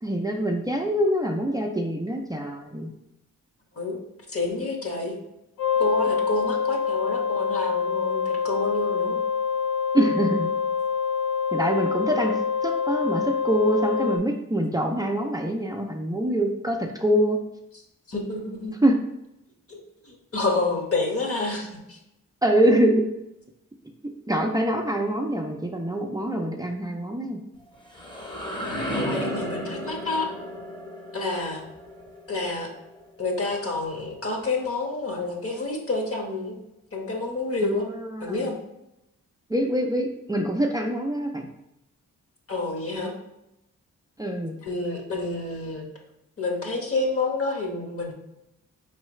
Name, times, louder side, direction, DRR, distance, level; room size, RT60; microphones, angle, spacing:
voice 1, 0.0-2.9 9.9-10.5 11.5-12.3 12.6-17.4 18.8-19.0 22.4-23.0 24.3-27.4 37.6-38.4 39.5-41.5 44.2-44.6, right 1 dB, 10° right, 0 dB, 0.5 m, -24 dB
voice 2, 4.3-5.2 5.8-9.2 18.1-18.8 19.7-19.8 20.0-22.0 29.0-30.3 31.1-31.6 32.3-32.7 33.2-36.6 36.9-37.9 38.2-38.6 42.5-43.1 44.6-45.9 46.4-48.1, left 3 dB, 45° left, 0 dB, 1.3 m, -28 dB
sound 1, 5.6-14.2, left 6 dB, 75° left, 0.8 m, -26 dB
sound 2, 27.6-33.4, equal, 15° left, 0.9 m, -33 dB
4.5 x 3.2 x 3.1 m, 0.87 s
cardioid pair, 55°, 32 cm